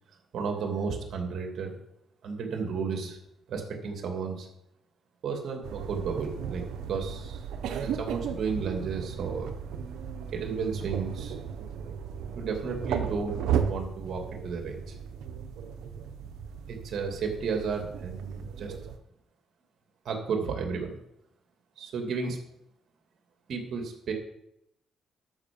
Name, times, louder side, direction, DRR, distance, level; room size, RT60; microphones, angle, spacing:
voice 1, 0.3-1.8 2.2-3.2 3.5-4.5 5.2-7.4 7.8-9.5 10.3-11.3 12.3-14.9 16.7-18.8 20.0-20.9 21.8-22.4 23.5-24.1, right 5 dB, 65° right, 3 dB, 2.4 m, -33 dB
sound 1, 5.6-19.0, right 8 dB, 85° right, 0.9 m, -35 dB
12.5 x 5.9 x 5.3 m, 0.79 s
cardioid pair, 90°, 0 cm